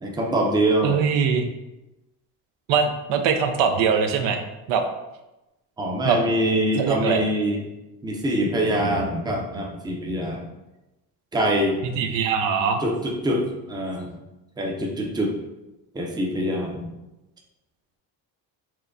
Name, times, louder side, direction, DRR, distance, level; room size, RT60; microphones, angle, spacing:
voice 1, 0.0-1.0 5.8-7.6 8.0-10.5 11.3-11.8 12.8-14.1 14.6-15.4 15.9-16.9, right 1 dB, 10° right, 0 dB, 0.5 m, -24 dB
voice 2, 0.8-1.5 2.7-4.4 4.7-4.8 6.0-6.2 6.8-7.2 11.8-12.8, right 6 dB, 70° right, 6 dB, 0.5 m, -22 dB
4.4 x 2.2 x 2.5 m, 0.99 s
cardioid pair, 95°, 43 cm